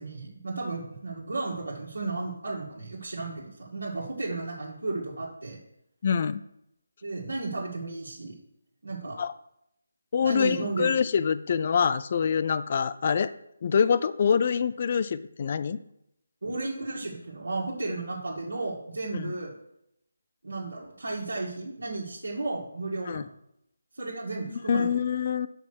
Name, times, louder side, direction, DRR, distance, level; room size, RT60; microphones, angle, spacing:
voice 1, 0.0-5.6 7.0-8.3 8.8-9.2 10.2-10.9 16.4-19.5 20.4-23.3 23.9-25.0, right 3 dB, 70° right, -6 dB, 2.0 m, -34 dB
voice 2, 6.0-6.4 9.2-9.3 10.1-13.3 13.6-15.8 19.1-19.3 23.1-23.2 24.7-25.5, left 6 dB, 40° left, 14 dB, 0.4 m, -25 dB
6.0 x 5.4 x 6.4 m, 0.79 s
figure-of-eight pair, 155°, 0 cm